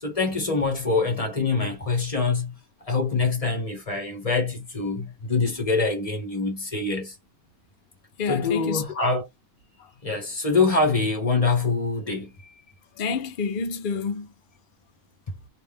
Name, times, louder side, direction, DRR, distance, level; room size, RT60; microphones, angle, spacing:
voice 1, 0.0-2.5 2.9-7.1 8.3-9.2 10.0-12.5, left 3 dB, 25° left, 1.1 m, -25 dB
voice 2, 8.2-8.8 12.9-14.3, left 5 dB, 50° left, 0.6 m, -28 dB
3.2 x 2.6 x 3.5 m
omnidirectional pair, 1.5 m